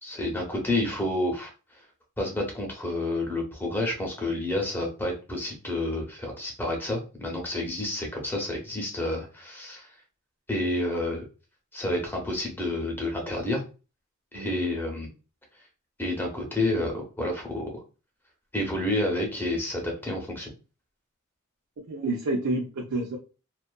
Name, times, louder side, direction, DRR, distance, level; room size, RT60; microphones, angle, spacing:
voice 1, 0.0-1.5 2.2-9.9 10.5-11.3 11.7-13.6 14.3-15.1 16.0-17.8 18.5-20.5, left 1 dB, 10° left, 0 dB, 0.7 m, -29 dB
voice 2, 21.9-23.2, right 2 dB, 85° right, -2 dB, 0.5 m, -29 dB
2.6 x 2.3 x 2.2 m, 0.33 s
head